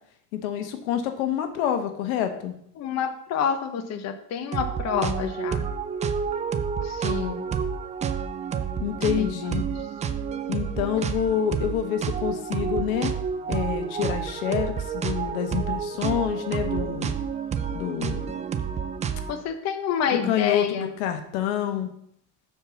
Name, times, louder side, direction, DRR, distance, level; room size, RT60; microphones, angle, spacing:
voice 1, 0.3-2.6 8.8-9.6 10.5-13.1 13.5-17.1 17.7-18.2 20.2-21.9, left 9 dB, 90° left, 7 dB, 1.2 m, -27 dB
voice 2, 2.8-5.7 6.8-7.4 9.2-9.7 19.3-20.9, left 7 dB, 40° left, 8 dB, 0.9 m, -28 dB
sound 1, 4.5-19.4, right 7 dB, 20° right, 0.3 m, -29 dB
6.7 x 4.7 x 6.9 m, 0.69 s
cardioid pair, 135°, 40 cm